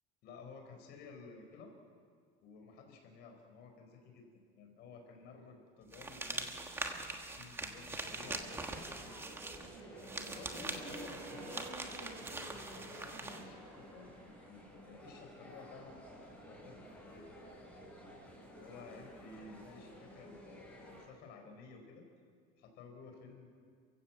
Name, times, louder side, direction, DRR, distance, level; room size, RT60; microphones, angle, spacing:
voice 1, 0.2-1.7 2.4-4.3 4.5-6.6 7.1-8.9 10.1-11.7 12.2-17.3 18.6-22.0 22.6-23.5, left 4 dB, 50° left, 3 dB, 4.9 m, -54 dB
sound 1, 5.9-13.4, right 3 dB, 10° right, 1.4 m, -43 dB
sound 2, 8.1-21.0, equal, 5° left, 5.1 m, -52 dB
sound 3, 8.6-15.9 16.2-16.5 17.0-17.7 18.1-18.2, right 5 dB, 80° right, 5.8 m, -56 dB
29.0 x 16.0 x 7.5 m, 2.1 s
cardioid pair, 175°, 21 cm